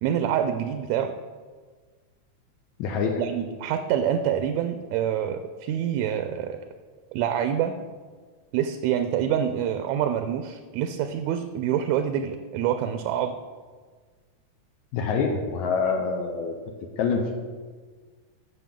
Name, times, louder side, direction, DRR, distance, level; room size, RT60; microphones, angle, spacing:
voice 1, 0.0-1.1 3.2-6.6 7.1-7.7 8.5-13.4, right 9 dB, 80° right, 8 dB, 1.8 m, -26 dB
voice 2, 2.8-3.3 14.9-16.6 17.0-17.3, left 5 dB, 80° left, 2 dB, 2.1 m, -26 dB
15.0 x 6.0 x 3.6 m, 1.5 s
omnidirectional pair, 3.4 m